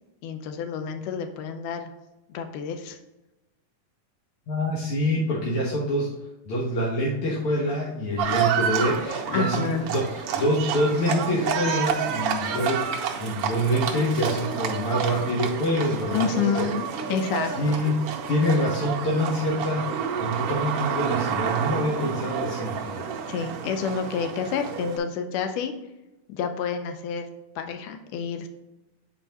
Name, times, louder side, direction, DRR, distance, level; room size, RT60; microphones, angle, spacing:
voice 1, 0.2-1.9 2.3-3.0 9.3-9.9 16.1-16.8 17.1-17.5 23.3-25.7 26.3-27.3 27.6-28.5, left 6 dB, 80° left, 6 dB, 2.2 m, -29 dB
voice 2, 4.5-6.1 6.4-16.6 17.6-17.9 18.3-23.1, equal, 60° left, -4 dB, 1.5 m, -26 dB
Livestock farm animals working animals, 8.2-25.0, right 7 dB, 80° right, 1.3 m, -29 dB
8.9 x 4.5 x 2.9 m, 1.0 s
omnidirectional pair, 3.8 m